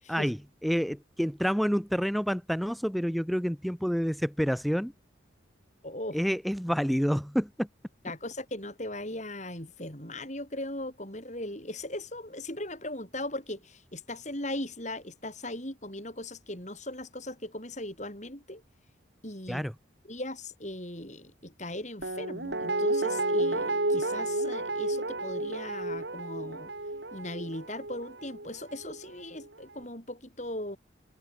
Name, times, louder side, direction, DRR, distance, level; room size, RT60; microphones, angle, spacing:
voice 1, 0.1-4.9 6.1-7.7 19.5-19.7, equal, ahead, 5.9 m, -28 dB
voice 2, 5.8-6.2 8.0-18.6 19.2-19.6 20.0-26.7 27.1-30.8, left 1 dB, 35° left, 7.8 m, -38 dB
Guitar, 22.0-29.0 29.4-29.5, right 2 dB, 65° right, 3.4 m, -31 dB
head